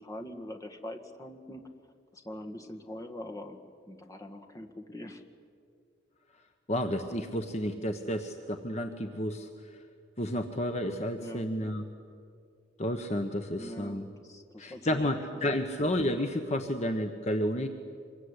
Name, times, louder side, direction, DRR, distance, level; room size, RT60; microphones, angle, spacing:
voice 1, 0.0-1.6 2.1-5.2 8.9-9.1 11.2-11.5 13.6-15.2 15.5-15.6, left 1 dB, 20° left, 5 dB, 1.9 m, -43 dB
voice 2, 6.7-9.8 10.2-11.8 12.8-14.1 14.6-17.7, left 1 dB, 35° left, 6 dB, 1.3 m, -31 dB
26.0 x 23.0 x 9.9 m, 2.2 s
head